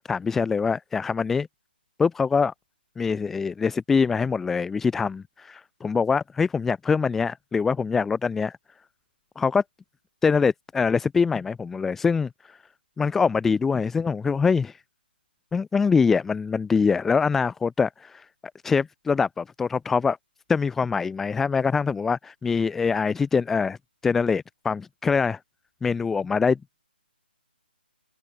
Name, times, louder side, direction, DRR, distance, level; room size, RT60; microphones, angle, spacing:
voice 1, 0.1-1.5 2.0-2.5 3.0-8.5 9.4-9.6 10.2-12.6 13.0-14.8 15.5-18.2 18.6-20.2 20.5-23.8 24.0-25.4 25.8-26.6, left 5 dB, 5° left, 2.9 m, -24 dB
hypercardioid pair, 165°, 6 cm